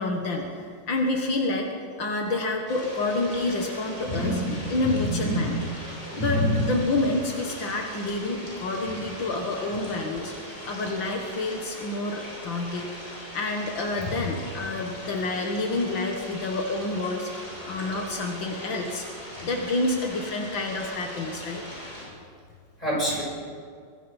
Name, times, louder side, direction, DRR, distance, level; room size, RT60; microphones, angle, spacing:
voice 1, 0.0-1.7 2.0-4.4 4.7-5.6 6.2-19.1 19.4-21.6, left 2 dB, 80° left, 2 dB, 2.5 m, -28 dB
sound 1, 2.7-22.1, equal, 40° left, 7.2 m, -40 dB
voice 2, 4.0-5.6 6.1-6.6 22.8-23.2, equal, 20° left, -3 dB, 6.7 m, -27 dB
25.0 x 21.0 x 5.5 m, 2.2 s
omnidirectional pair, 2.1 m